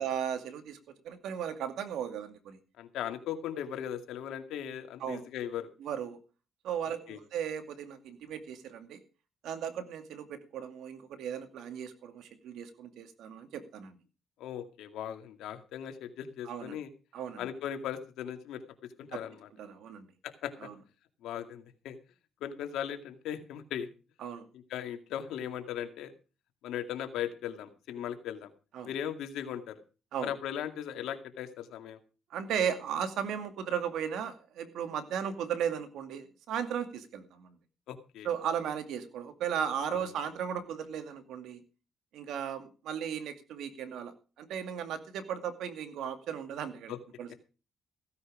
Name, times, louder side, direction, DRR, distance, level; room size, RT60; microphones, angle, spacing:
voice 1, 0.0-2.6 5.0-5.2 5.8-6.2 6.6-9.0 9.4-14.0 16.4-16.8 17.1-17.5 19.1-19.2 19.6-20.1 20.6-20.7 24.2-24.5 28.7-28.9 30.1-30.3 32.3-37.6 38.2-41.6 42.1-47.3, right 8 dB, 80° right, 9 dB, 2.2 m, -36 dB
voice 2, 2.8-5.7 7.1-7.2 14.4-16.9 17.4-18.6 19.0-19.3 20.2-20.7 21.2-22.0 22.4-23.9 24.7-26.1 26.6-28.5 28.8-29.8 30.2-32.0 37.9-38.3 39.9-40.0 46.9-47.0, left 10 dB, 85° left, 7 dB, 2.2 m, -38 dB
16.0 x 9.7 x 5.0 m, 0.34 s
cardioid pair, 90°, 0 cm